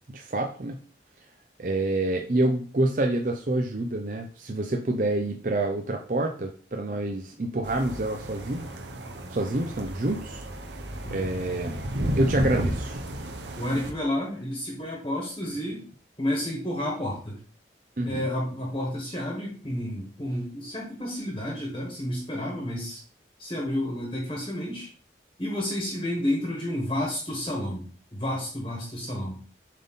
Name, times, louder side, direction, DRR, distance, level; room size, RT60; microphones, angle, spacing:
voice 1, 0.1-0.8 1.6-8.7 9.3-10.4 11.1-11.8 12.2-13.0 18.0-18.3, right 2 dB, 50° right, 2 dB, 0.6 m, -27 dB
sound 1, 7.6-13.9, right 1 dB, 90° right, 0.9 m, -33 dB
voice 2, 13.6-15.8 16.2-17.4 18.0-23.0 23.4-24.9 25.4-27.9 28.1-29.4, left 1 dB, 30° left, -2 dB, 1.4 m, -30 dB
7.4 x 3.7 x 4.0 m, 0.42 s
head